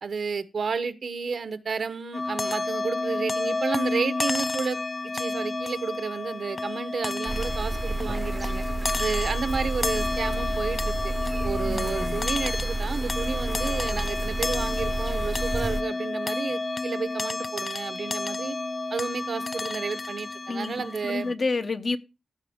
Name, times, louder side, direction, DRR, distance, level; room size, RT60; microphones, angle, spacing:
voice 1, 0.0-4.8 5.1-8.6 9.0-11.1 11.4-18.6 18.9-21.3, right 5 dB, 80° right, 0.8 m, -31 dB
sound 1, 2.1-21.3, left 2 dB, 40° left, 0.4 m, -31 dB
sound 2, 7.3-15.8, right 2 dB, 30° right, 0.6 m, -30 dB
voice 2, 11.6-12.2 20.5-22.0, left 3 dB, 55° left, 0.8 m, -30 dB
15.5 x 5.2 x 3.5 m
wide cardioid pair, 90°, 0 cm